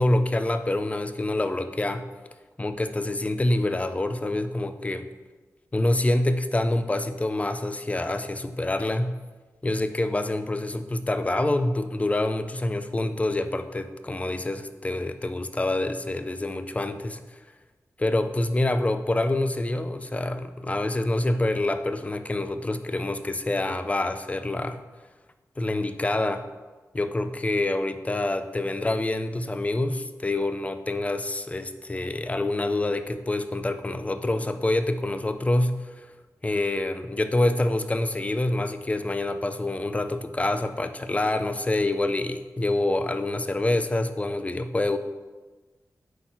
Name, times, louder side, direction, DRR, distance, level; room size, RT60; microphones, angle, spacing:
voice 1, 0.0-2.1 2.6-5.1 5.7-9.1 9.6-17.2 18.0-24.8 25.6-26.4 26.9-36.1 36.4-45.0, left 2 dB, 20° left, 10 dB, 0.5 m, -26 dB
9.3 x 4.1 x 4.4 m, 1.3 s
wide cardioid pair, 105°, 6 cm